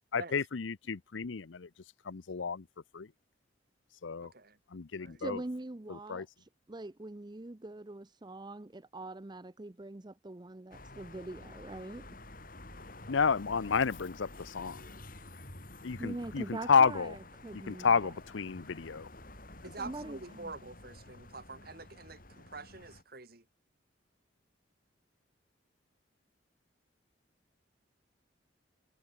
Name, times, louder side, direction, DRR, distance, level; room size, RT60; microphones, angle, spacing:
voice 1, 0.1-1.7 2.1-2.6 2.9-3.1 4.0-4.3 4.7-5.4 6.1-6.2 13.1-14.8 15.8-17.1 17.7-19.1, left 5 dB, 90° left, 0.7 m, -30 dB
voice 2, 4.2-4.6 5.0-5.2 19.6-23.4, right 3 dB, 55° right, 3.3 m, -46 dB
voice 3, 5.2-12.1 16.0-18.1 19.8-20.5, right 2 dB, 25° right, 0.6 m, -43 dB
sound 1, 10.7-23.0, left 2 dB, 50° left, 6.6 m, -50 dB
head